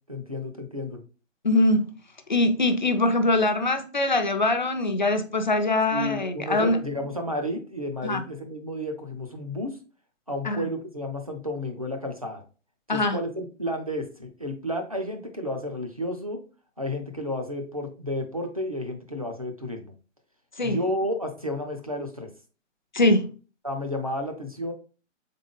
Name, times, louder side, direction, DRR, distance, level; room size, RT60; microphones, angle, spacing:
voice 1, 0.1-1.0 5.9-9.8 10.3-12.4 12.9-16.4 16.8-19.9 20.6-22.3 23.6-24.7, left 1 dB, 30° right, 0.4 m, -32 dB
voice 2, 1.4-1.9 2.3-6.8 8.0-8.2 10.5-10.6 12.9-13.2 20.6-20.8 22.9-23.3, left 2 dB, 40° left, 0.4 m, -23 dB
3.8 x 3.5 x 3.5 m
hypercardioid pair, 175°, 38 cm